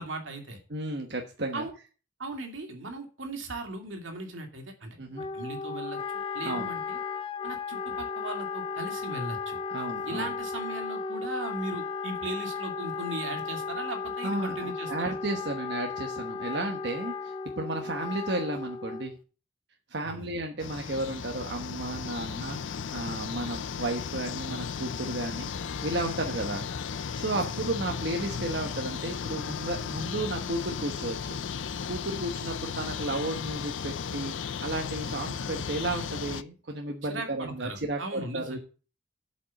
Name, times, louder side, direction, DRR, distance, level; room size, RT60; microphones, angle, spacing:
voice 1, 0.0-0.6 1.5-1.7 2.2-5.0 5.3-6.0 6.3-7.0 7.4-9.6 10.1-15.2 20.0-20.3 26.2-26.4 27.3-27.6 37.0-38.6, right 2 dB, 90° right, 3 dB, 2.5 m, -38 dB
voice 2, 0.7-1.7 5.0-5.3 6.4-6.7 9.7-10.3 14.2-19.1 19.9-25.5 25.8-26.7 27.1-31.4 31.9-34.3 34.6-38.6, right 2 dB, 60° right, 2 dB, 1.1 m, -33 dB
Wind instrument woodwind instrument, 5.1-19.2, left 5 dB, 30° left, 0.6 m, -35 dB
sound 1, 20.6-36.4, left 6 dB, 80° left, 0.5 m, -35 dB
8.2 x 5.4 x 7.0 m, 0.36 s
head